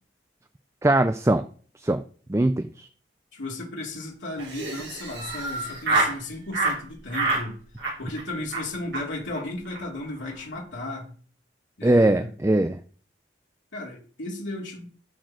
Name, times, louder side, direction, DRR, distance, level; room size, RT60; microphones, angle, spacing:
voice 1, 0.8-1.4 1.8-2.0 2.3-2.9 11.8-12.8, right 1 dB, 15° right, 10 dB, 0.4 m, -21 dB
voice 2, 3.3-7.6 8.0-11.1 11.8-12.3 13.7-14.9, left 2 dB, 90° left, -3 dB, 2.8 m, -34 dB
Laughter, 4.4-6.2 6.5-6.8 7.1-7.5 7.8-8.2 8.5-8.6 8.9-9.0 9.3-9.4 9.6-9.8 10.1-10.4, right 3 dB, 75° right, 4.9 m, -27 dB
12.0 x 4.4 x 4.9 m, 0.42 s
head